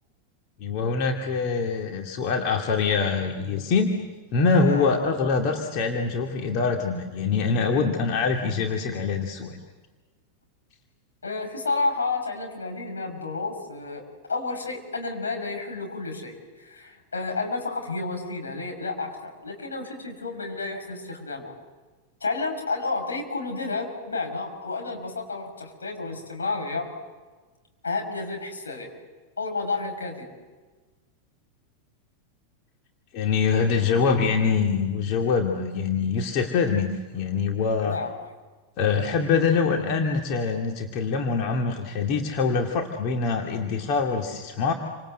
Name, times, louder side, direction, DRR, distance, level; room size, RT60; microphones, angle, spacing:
voice 1, 0.6-3.9 4.3-9.6 33.1-38.0 38.8-44.7, left 5 dB, 40° left, 2 dB, 2.5 m, -24 dB
voice 2, 4.6-5.0 11.2-21.5 22.2-26.9 27.8-28.9 29.4-30.3 37.8-38.1, left 3 dB, 75° left, 3 dB, 6.2 m, -31 dB
29.0 x 26.5 x 7.9 m, 1.3 s
figure-of-eight pair, 90°, 0 cm